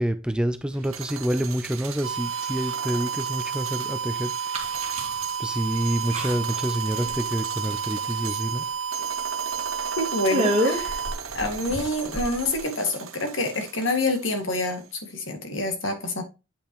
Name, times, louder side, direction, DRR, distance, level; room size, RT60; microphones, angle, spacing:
voice 1, 0.0-4.3 4.8-5.0 5.4-8.7, right 1 dB, 5° right, 0.4 m, -27 dB
sound 1, 0.7-14.9, right 8 dB, 90° right, 1.1 m, -39 dB
sound 2, 2.0-11.1, right 7 dB, 70° right, 0.8 m, -31 dB
sound 3, 4.5-5.3 5.7-5.8 6.1-6.6 6.9-7.4 7.7-8.3 8.6-8.7 9.0-9.1 9.6-9.8 10.3-12.6, equal, 30° right, 2.0 m, -28 dB
voice 2, 10.0-11.0 11.3-14.8 15.1-16.2, left 2 dB, 65° left, 2.1 m, -27 dB
8.6 x 5.6 x 3.0 m
head